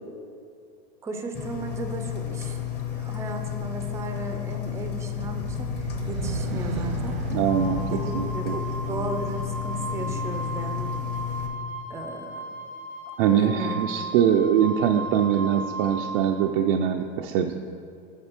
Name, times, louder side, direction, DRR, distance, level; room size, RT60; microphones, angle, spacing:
voice 1, 1.0-2.6 2.9-7.2 7.8-11.0 11.9-12.5 13.3-13.8, right 2 dB, 10° right, 5 dB, 0.5 m, -35 dB
Engine, 1.3-11.5, left 11 dB, 35° left, 1.1 m, -32 dB
sound 1, 4.7-11.1, right 5 dB, 90° right, 1.0 m, -35 dB
voice 2, 7.3-7.8 8.1-8.6 13.2-17.5, right 9 dB, 65° right, 3 dB, 0.4 m, -23 dB
Wind instrument woodwind instrument, 7.5-16.4, right 2 dB, 55° left, 0.9 m, -36 dB
6.7 x 5.1 x 4.4 m, 2.5 s
supercardioid pair, 125°, 30 cm